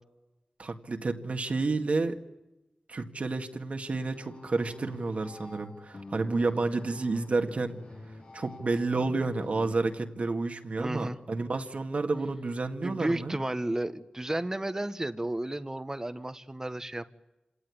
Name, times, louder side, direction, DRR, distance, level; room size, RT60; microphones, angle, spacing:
voice 1, 0.6-2.2 2.9-7.8 8.3-13.4, right 3 dB, 65° right, 5 dB, 2.0 m, -30 dB
sound 1, 4.1-10.0, left 2 dB, 75° left, 5.0 m, -47 dB
voice 2, 10.8-11.2 12.8-17.1, right 1 dB, 25° right, 11 dB, 1.4 m, -32 dB
27.0 x 18.5 x 9.9 m, 1.0 s
cardioid pair, 50°, 2 cm